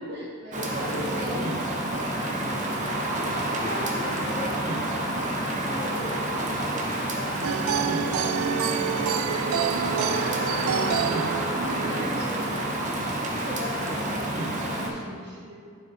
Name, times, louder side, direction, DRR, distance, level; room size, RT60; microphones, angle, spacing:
voice 1, 0.0-1.6 1.9-3.9 11.6-12.6 13.3-15.6, equal, 55° right, -4 dB, 1.4 m, -37 dB
Rain, 0.5-14.9, right 1 dB, 35° right, 0.8 m, -29 dB
voice 2, 3.5-10.9, left 1 dB, 35° left, -7 dB, 1.8 m, -39 dB
sound 1, 7.4-12.5, right 7 dB, 80° right, 0.3 m, -28 dB
9.9 x 5.8 x 2.6 m, 2.3 s
head